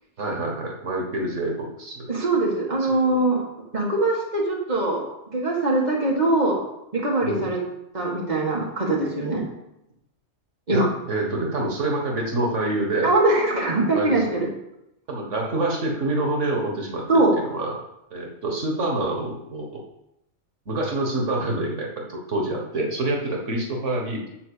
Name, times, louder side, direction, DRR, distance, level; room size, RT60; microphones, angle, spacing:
voice 1, 0.2-2.1 2.8-3.2 7.2-7.5 10.7-13.1 13.9-14.4 15.1-17.8 18.1-19.8 20.7-24.3, right 2 dB, 85° right, 0 dB, 1.8 m, -27 dB
voice 2, 2.1-3.4 3.7-5.0 5.3-6.6 6.9-7.6 7.9-9.4 10.7-10.9 13.0-14.4 17.1-17.3, right 2 dB, 35° right, -3 dB, 2.1 m, -22 dB
9.5 x 4.6 x 6.9 m, 0.86 s
omnidirectional pair, 1.2 m